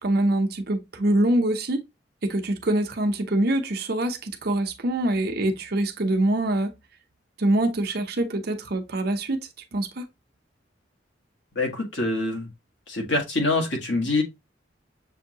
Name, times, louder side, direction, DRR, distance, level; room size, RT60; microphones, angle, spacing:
voice 1, 0.0-1.8 2.2-6.7 7.4-10.1, right 1 dB, 60° right, 0.8 m, -24 dB
voice 2, 11.5-12.5 12.9-14.2, left 2 dB, 75° left, 1.7 m, -25 dB
7.0 x 2.6 x 2.8 m
head